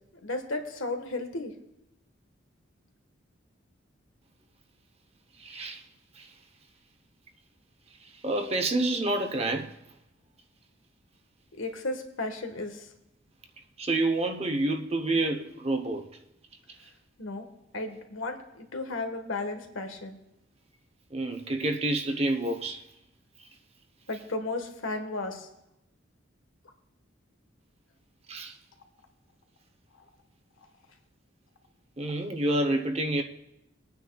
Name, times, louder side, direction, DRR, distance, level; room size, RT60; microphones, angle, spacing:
voice 1, 0.2-1.5 11.6-12.9 17.2-17.4 17.7-20.2 24.1-25.5 29.9-30.1, left 2 dB, 80° left, 1.4 m, -34 dB
voice 2, 5.4-5.8 6.2-6.3 8.2-9.7 13.8-16.1 21.1-22.8 28.3-28.5 32.0-33.2, right 2 dB, 30° right, 0.8 m, -28 dB
22.5 x 9.3 x 2.3 m
head